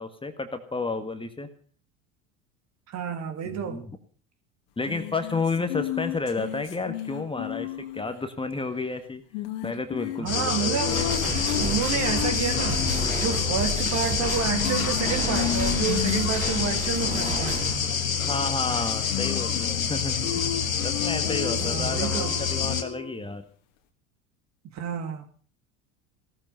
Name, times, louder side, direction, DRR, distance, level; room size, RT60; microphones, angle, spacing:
voice 1, 0.0-1.5 3.4-3.9 4.8-9.2 9.6-11.1 18.2-20.6 20.8-23.4, left 3 dB, 15° left, 1.7 m, -31 dB
voice 2, 2.9-3.8 10.2-11.0 11.5-17.9 21.6-22.3 24.6-25.3, right 8 dB, 40° right, 2.7 m, -30 dB
sound 1, 4.9-8.2 9.3-13.1 14.5-17.6 18.9-19.9 20.2-23.1, left 12 dB, 60° left, 2.4 m, -33 dB
sound 2, 10.3-22.8, left 7 dB, 85° left, 1.5 m, -27 dB
sound 3, 10.9-17.8, right 2 dB, 20° right, 4.3 m, -32 dB
17.0 x 14.0 x 5.6 m
figure-of-eight pair, 75°, 40 cm